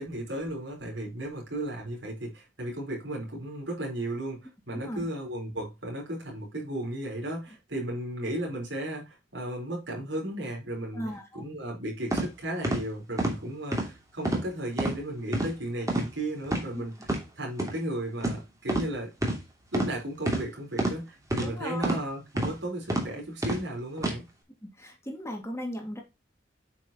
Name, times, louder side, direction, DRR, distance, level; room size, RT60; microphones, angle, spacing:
voice 1, 0.0-11.0 11.3-16.9 17.4-19.1 19.7-24.2, right 1 dB, 75° right, 4.5 m, -35 dB
voice 2, 4.7-5.0 10.9-11.4 16.7-16.8 21.4-22.0 24.6-26.0, equal, 15° left, 2.2 m, -37 dB
sound 1, 12.1-12.3 12.6-12.8 13.2-13.4 13.7-13.9 14.2-14.5 14.8-14.9 15.3-15.5 15.9-16.1 16.4-16.6 17.0-17.2 17.6-17.7 18.2-18.4 18.7-18.9 19.2-19.4 19.7-19.9 20.3-20.4 20.8-20.9 21.3-21.5 21.8-22.0 22.4-22.5 22.9-23.0 23.4-23.6 24.0-24.1, right 1 dB, 20° right, 2.7 m, -27 dB
8.7 x 6.5 x 3.0 m
head